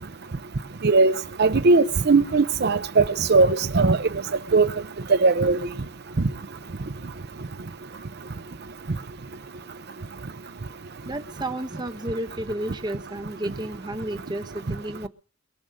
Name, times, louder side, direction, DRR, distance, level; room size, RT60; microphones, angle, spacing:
voice 1, 1.4-4.0 4.5-4.7 5.1-5.6, right 3 dB, 50° right, 0.7 m, -18 dB
voice 2, 11.0-15.1, right 1 dB, 20° right, 0.9 m, -32 dB
22.0 x 7.8 x 6.3 m
head